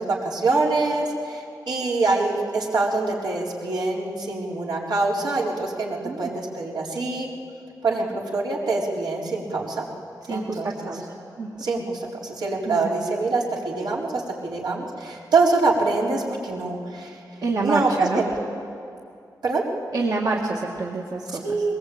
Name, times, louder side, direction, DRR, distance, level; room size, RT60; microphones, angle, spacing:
voice 1, 0.0-7.3 7.8-9.9 10.3-10.9 11.6-17.2 17.6-18.3 19.4-19.6 21.4-21.7, right 3 dB, 80° right, -3 dB, 4.2 m, -25 dB
voice 2, 10.3-11.5 12.7-12.9 17.4-18.2 19.9-21.6, right 3 dB, 60° right, -3 dB, 2.0 m, -27 dB
22.5 x 20.5 x 8.7 m, 2.5 s
wide cardioid pair, 125°, 7 cm